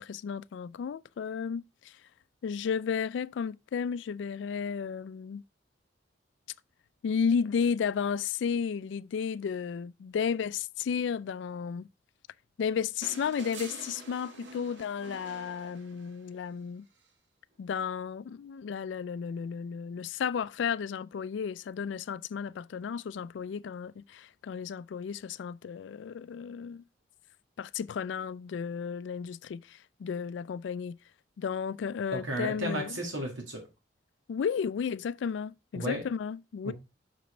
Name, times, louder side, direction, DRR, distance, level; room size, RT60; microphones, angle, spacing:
voice 1, 0.0-2.0 2.4-5.4 7.0-11.9 12.6-16.8 17.6-26.8 27.6-31.0 31.4-33.0 34.3-36.7, left 6 dB, 70° left, 0.3 m, -33 dB
sound 1, 13.0-16.4 17.9-18.0, right 3 dB, 70° right, 1.2 m, -47 dB
voice 2, 32.1-33.6 35.7-36.0 36.6-36.7, right 1 dB, 85° right, 2.0 m, -33 dB
5.9 x 5.2 x 4.3 m
head